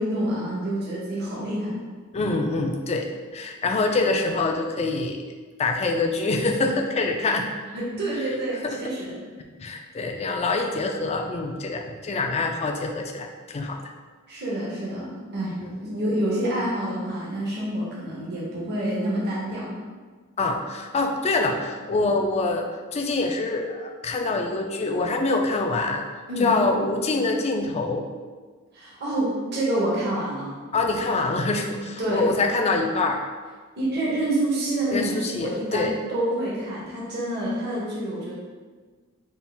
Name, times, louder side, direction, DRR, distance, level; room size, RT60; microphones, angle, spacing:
voice 1, 0.0-1.7 7.7-9.2 14.3-19.8 26.3-26.5 28.7-30.5 32.0-32.2 33.8-38.3, right 1 dB, 50° right, -6 dB, 0.9 m, -27 dB
voice 2, 2.1-3.1 3.3-5.2 5.6-7.5 8.2-8.3 8.6-8.8 9.6-13.9 15.6-15.7 20.4-22.7 22.9-26.0 26.4-28.0 30.7-33.2 34.9-36.0, left 3 dB, 30° left, 3 dB, 0.4 m, -25 dB
4.3 x 2.4 x 3.4 m, 1.4 s
head